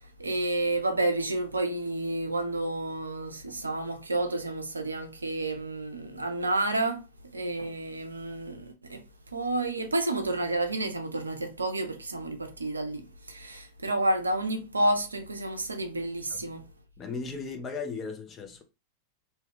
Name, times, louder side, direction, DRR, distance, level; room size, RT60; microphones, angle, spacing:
voice 1, 0.2-7.0 7.3-9.0 9.3-16.6, right 2 dB, 80° right, 0.5 m, -30 dB
voice 2, 17.0-18.6, left 4 dB, 25° left, 0.6 m, -36 dB
2.8 x 2.3 x 3.4 m
figure-of-eight pair, 90°, 0 cm